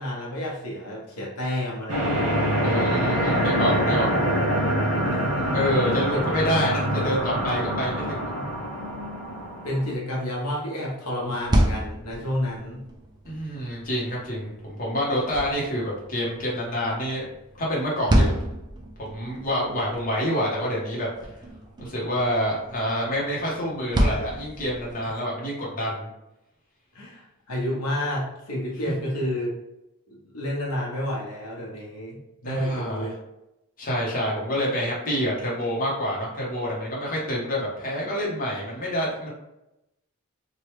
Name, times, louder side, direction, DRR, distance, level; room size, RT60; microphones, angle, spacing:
voice 1, 0.0-2.3 2.6-3.3 3.7-4.2 5.0-5.5 6.1-6.2 8.0-8.4 9.6-12.8 26.9-29.5 30.1-33.1, left 1 dB, 85° left, -3 dB, 1.0 m, -31 dB
sound 1, 1.9-9.9, equal, 80° right, 0.9 m, -25 dB
voice 2, 2.6-4.1 5.5-8.3 13.2-17.3 17.6-18.5 19.0-21.1 21.8-26.1 32.4-33.1 33.8-39.3, equal, 40° left, -5 dB, 0.9 m, -27 dB
sound 2, 11.2-25.2, equal, 20° right, 0.3 m, -30 dB
3.1 x 2.3 x 3.1 m, 0.90 s
head